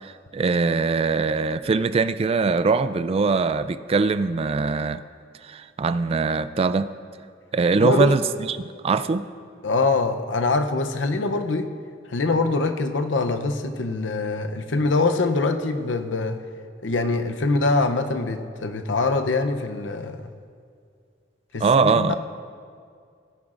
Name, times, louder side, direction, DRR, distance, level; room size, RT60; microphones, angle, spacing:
voice 1, 0.0-5.0 5.4-6.9 7.5-9.3 21.6-22.1, right 4 dB, 35° right, 0.3 m, -22 dB
voice 2, 7.8-8.1 9.6-11.7 12.1-16.4 16.8-20.3 21.5-22.1, left 3 dB, 85° left, 0.7 m, -24 dB
17.0 x 11.0 x 2.5 m
head